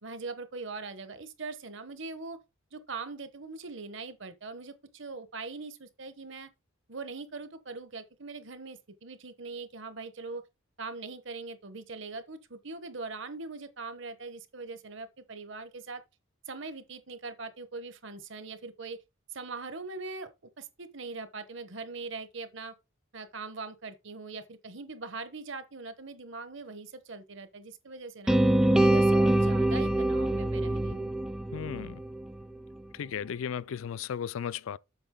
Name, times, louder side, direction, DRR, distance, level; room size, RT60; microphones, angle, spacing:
voice 1, 0.0-2.4 2.7-6.5 6.9-10.4 10.8-16.0 16.5-19.0 19.3-20.3 20.6-22.7 23.1-28.4 28.8-31.1, right 3 dB, 60° right, 1.1 m, -41 dB
sound 1, 28.3-32.3, right 1 dB, 5° right, 0.5 m, -24 dB
voice 2, 31.5-32.0 32.9-34.8, left 8 dB, 70° left, 0.3 m, -35 dB
8.0 x 6.3 x 3.8 m
head